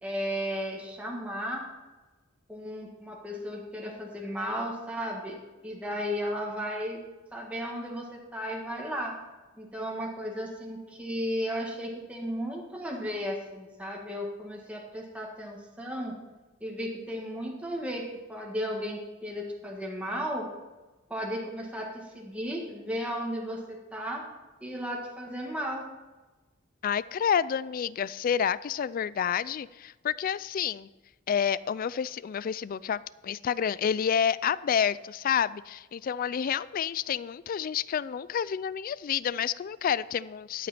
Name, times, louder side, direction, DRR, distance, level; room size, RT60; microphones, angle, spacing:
voice 1, 0.0-1.6 2.5-7.0 7.3-9.1 9.6-16.2 16.6-20.5 21.1-24.2 24.6-25.8, equal, 5° right, -1 dB, 1.7 m, -34 dB
voice 2, 26.8-30.9 31.3-40.7, left 8 dB, 45° left, 19 dB, 0.3 m, -29 dB
13.5 x 8.4 x 4.3 m, 1.2 s
head